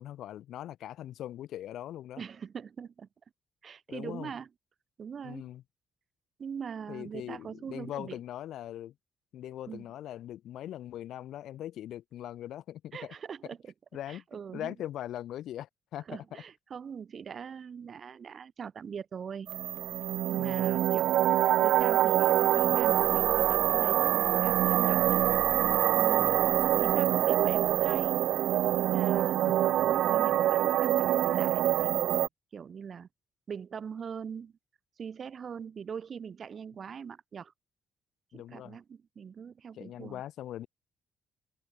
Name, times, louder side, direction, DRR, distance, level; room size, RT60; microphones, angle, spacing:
voice 1, 0.0-2.2 3.9-4.3 5.2-5.6 6.9-8.9 9.3-13.1 13.9-14.2 14.5-16.4 20.4-20.8 26.2-26.4 29.6-29.7 38.3-38.8 39.7-40.7, left 12 dB, 80° left, 0.9 m, -41 dB
voice 2, 2.2-3.1 3.6-4.5 5.0-5.5 6.4-8.2 9.7-9.9 12.9-13.7 14.1-14.7 16.1-19.5 20.3-21.4 21.6-25.2 26.0-26.4 26.8-28.2 28.8-32.1 32.5-33.1 33.5-34.5 35.0-37.5 38.3-40.2, right 7 dB, 50° right, 2.2 m, -41 dB
sound 1, 19.5-32.3, right 12 dB, 80° right, 0.3 m, -25 dB
cardioid pair, 90°, 0 cm